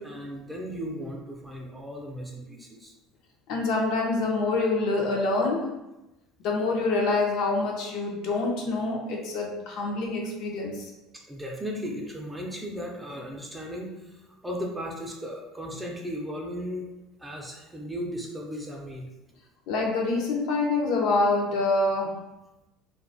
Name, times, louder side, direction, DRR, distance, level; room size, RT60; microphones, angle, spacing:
voice 1, 0.0-2.9 11.1-16.8 17.2-19.1, equal, 10° right, -1 dB, 0.5 m, -36 dB
voice 2, 3.5-5.7 6.4-10.9 19.7-22.1, left 3 dB, 70° left, -1 dB, 0.5 m, -26 dB
2.3 x 2.2 x 2.6 m, 0.98 s
supercardioid pair, 100°, 0 cm